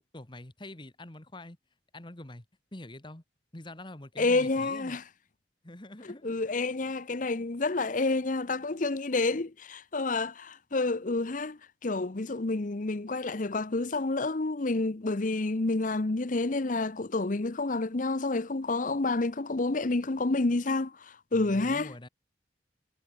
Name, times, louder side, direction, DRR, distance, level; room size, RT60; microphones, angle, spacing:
voice 1, 0.1-1.6 1.9-2.4 2.7-3.2 3.5-5.0 5.6-6.3 21.3-22.1, left 1 dB, 25° left, 1.6 m, -45 dB
voice 2, 4.2-5.0 6.2-21.9, left 3 dB, 45° left, 0.8 m, -29 dB
head